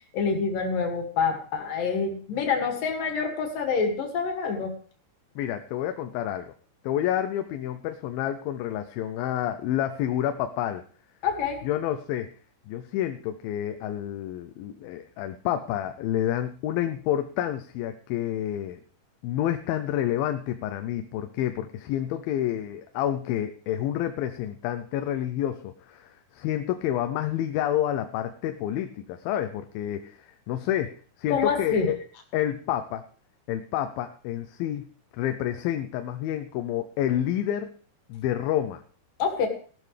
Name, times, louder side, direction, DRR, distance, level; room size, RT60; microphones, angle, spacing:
voice 1, 0.1-4.8 11.2-11.6 31.3-31.9 39.2-39.5, left 5 dB, 70° left, 3 dB, 3.8 m, -26 dB
voice 2, 5.4-6.5 6.8-10.8 11.6-12.3 12.7-18.8 19.2-32.0 32.3-33.0 33.5-34.9 35.1-37.7 38.1-38.8, left 11 dB, 85° left, 8 dB, 2.5 m, -29 dB
16.5 x 12.0 x 3.3 m, 0.43 s
omnidirectional pair, 4.1 m